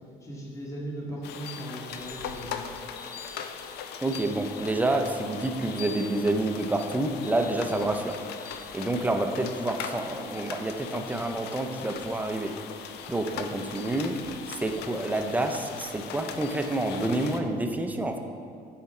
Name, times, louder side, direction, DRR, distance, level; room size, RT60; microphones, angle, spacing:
voice 1, 0.2-2.6, right 1 dB, 20° left, -4 dB, 1.2 m, -38 dB
sound 1, 1.2-17.4, left 7 dB, 75° left, 0.4 m, -40 dB
voice 2, 4.0-8.2 8.7-12.5 13.1-14.2 14.5-18.2, right 2 dB, 10° right, 5 dB, 0.4 m, -28 dB
6.1 x 4.3 x 4.2 m, 2.3 s
cardioid pair, 110°, 17 cm